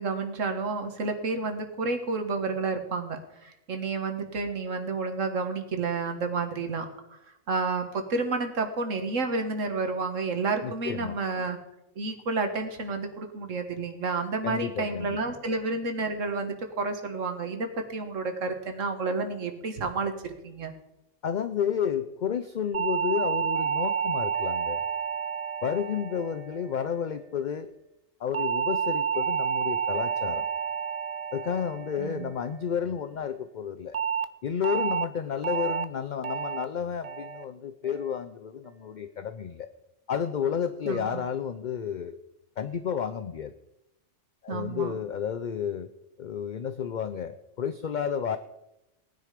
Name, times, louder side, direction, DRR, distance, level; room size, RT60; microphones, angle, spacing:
voice 1, 0.0-7.2 7.5-11.6 12.0-20.7 32.0-32.3 40.9-41.2 44.5-44.9, right 3 dB, 80° right, 6 dB, 1.9 m, -30 dB
voice 2, 10.6-11.2 14.4-15.2 21.2-24.8 25.6-27.7 28.2-30.5 31.3-34.0 34.4-39.7 40.1-42.2 42.6-43.5 44.4-45.9 46.2-48.4, left 8 dB, 50° left, 11 dB, 0.6 m, -31 dB
sound 1, 22.7-27.2 28.3-32.8 33.9-34.2 34.6-35.0 35.4-35.8 36.2-36.6 37.0-37.4 37.8-38.2, right 7 dB, 40° right, 0.6 m, -30 dB
18.0 x 9.9 x 5.1 m, 0.88 s
omnidirectional pair, 1.3 m